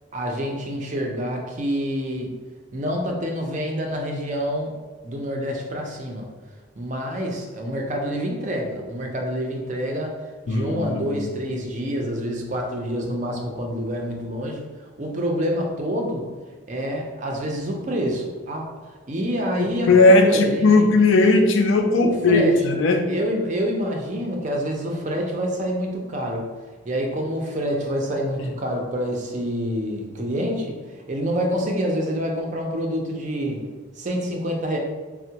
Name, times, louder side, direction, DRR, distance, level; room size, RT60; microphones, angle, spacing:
voice 1, 0.1-2.4 2.7-4.7 5.0-6.3 6.8-10.2 10.5-14.7 15.0-16.3 16.7-18.7 19.1-20.8 22.0-22.6 23.1-26.5 26.8-30.8 31.1-33.7 34.0-34.8, equal, 35° right, 1 dB, 0.4 m, -27 dB
voice 2, 10.5-11.3 19.6-23.1 28.4-28.5, left 2 dB, 70° left, 4 dB, 0.4 m, -17 dB
4.4 x 2.1 x 2.8 m, 1.4 s
head